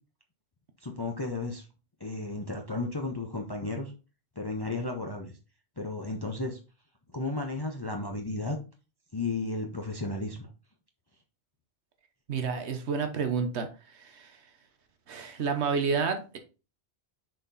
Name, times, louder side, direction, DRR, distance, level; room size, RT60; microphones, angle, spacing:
voice 1, 0.8-1.7 2.0-3.9 4.4-5.3 5.8-6.6 7.1-8.6 9.1-10.5, left 2 dB, 25° left, 2 dB, 0.8 m, -33 dB
voice 2, 12.3-13.7 13.9-14.4 15.1-16.4, right 5 dB, 90° right, 6 dB, 1.3 m, -30 dB
6.4 x 4.3 x 4.1 m, 0.32 s
omnidirectional pair, 1.1 m